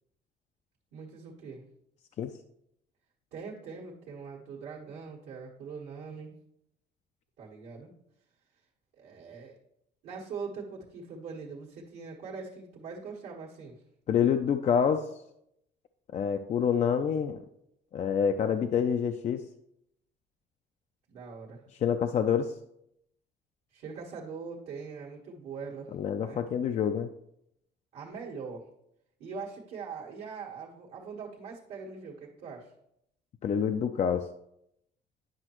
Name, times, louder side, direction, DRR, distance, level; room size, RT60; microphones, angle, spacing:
voice 1, 0.9-1.6 3.3-6.3 7.4-7.9 9.0-9.6 10.0-13.8 21.1-21.6 23.7-25.9 26.2-26.4 27.9-28.7 29.2-32.7, right 5 dB, 80° right, -5 dB, 1.4 m, -42 dB
voice 2, 14.1-15.1 16.1-17.4 17.9-19.4 21.8-22.5 25.9-27.1 33.4-34.3, left 7 dB, 40° left, 7 dB, 0.4 m, -27 dB
9.8 x 5.3 x 3.0 m, 0.77 s
cardioid pair, 110°, 17 cm